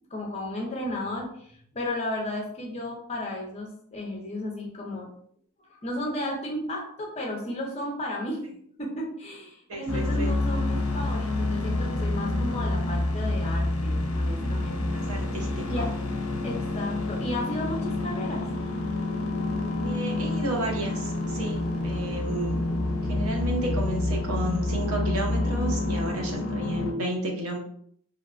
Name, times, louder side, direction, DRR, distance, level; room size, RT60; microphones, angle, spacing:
voice 1, 0.1-5.1 5.6-8.4 8.8-14.9 15.7-15.9 16.4-18.5, left 1 dB, 30° left, -1 dB, 0.6 m, -33 dB
voice 2, 9.7-10.3 14.9-16.0 19.8-22.6 23.0-27.6, right 1 dB, 90° right, 1 dB, 0.7 m, -32 dB
sound 1, 9.9-26.9, left 2 dB, 80° left, 0.5 m, -28 dB
2.8 x 2.1 x 2.4 m, 0.63 s
head